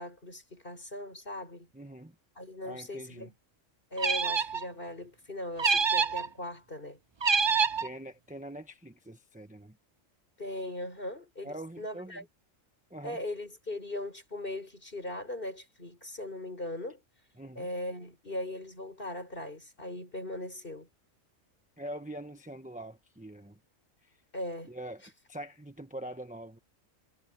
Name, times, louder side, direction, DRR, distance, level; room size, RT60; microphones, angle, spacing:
voice 1, 0.0-1.7 2.4-3.3 3.9-7.0 10.4-12.2 13.0-17.0 17.6-20.9 24.3-24.7, left 1 dB, 40° left, 5.6 m, -39 dB
voice 2, 1.7-2.1 2.6-3.3 7.8-9.8 11.4-12.2 12.9-13.2 17.4-17.7 21.8-23.6 24.0-24.2 24.7-26.6, right 1 dB, 5° right, 1.2 m, -44 dB
sound 1, 4.0-4.6 5.6-6.3 7.2-7.9, right 5 dB, 45° right, 0.3 m, -26 dB
omnidirectional pair, 1.4 m